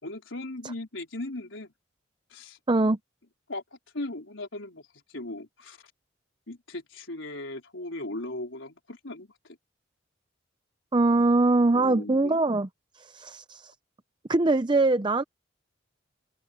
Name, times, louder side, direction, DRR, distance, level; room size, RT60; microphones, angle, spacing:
voice 1, 0.0-1.7 2.3-2.9 3.5-4.8 5.1-5.9 6.5-9.6 11.7-12.4, left 2 dB, 80° left, 4.1 m, -38 dB
voice 2, 2.7-3.0 10.9-12.7 12.9-13.7 14.3-15.2, right 2 dB, 25° right, 0.6 m, -22 dB
open air
head